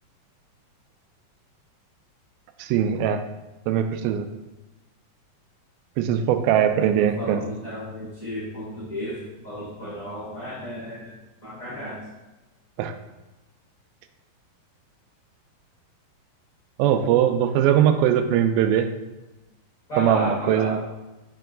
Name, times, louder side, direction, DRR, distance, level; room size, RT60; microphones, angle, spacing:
voice 1, 2.6-3.2 3.7-4.3 6.0-7.5 12.8-12.9 16.8-18.9 20.0-20.8, right 9 dB, 90° right, 8 dB, 2.4 m, -21 dB
voice 2, 6.8-9.2 9.4-11.1 11.4-12.0 19.9-20.7, equal, 30° left, -10 dB, 1.6 m, -33 dB
5.5 x 4.6 x 3.8 m, 1.1 s
omnidirectional pair, 4.1 m